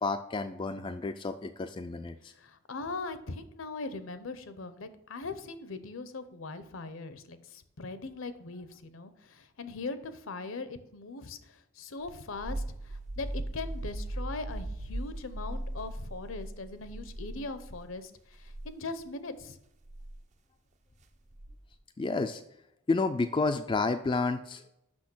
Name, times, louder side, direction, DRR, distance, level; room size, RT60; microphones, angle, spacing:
voice 1, 0.0-2.3 22.0-22.4 22.9-24.6, left 3 dB, 25° left, 7 dB, 0.3 m, -30 dB
voice 2, 2.3-19.6, left 3 dB, 70° left, 11 dB, 0.7 m, -40 dB
sound 1, 12.0-17.9 18.4-18.7 19.9-20.2 21.3-21.7, right 1 dB, 35° right, 0.5 m, -38 dB
6.2 x 6.0 x 6.1 m, 0.81 s
head